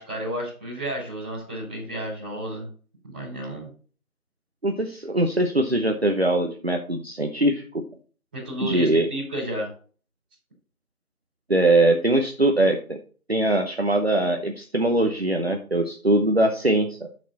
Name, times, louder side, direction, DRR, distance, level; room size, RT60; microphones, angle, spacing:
voice 1, 0.0-2.7 3.0-3.7 8.3-9.7, equal, 5° right, -13 dB, 3.1 m, -32 dB
voice 2, 4.6-7.8 8.6-9.1 11.5-13.0 13.3-17.1, right 1 dB, 45° right, 3 dB, 0.9 m, -22 dB
9.0 x 6.3 x 4.2 m, 0.40 s
figure-of-eight pair, 175°, 44 cm